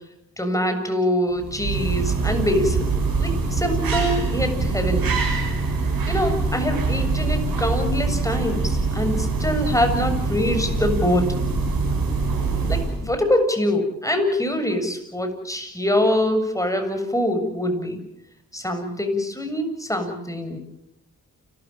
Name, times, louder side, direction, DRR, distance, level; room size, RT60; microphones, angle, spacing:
voice 1, 0.4-5.1 6.1-11.5 12.7-18.0 18.5-20.6, left 1 dB, 10° left, 6 dB, 7.3 m, -24 dB
sound 1, 1.3-13.2, right 3 dB, 90° right, 6.4 m, -24 dB
29.5 x 14.0 x 9.1 m, 0.80 s
cardioid pair, 40°, 34 cm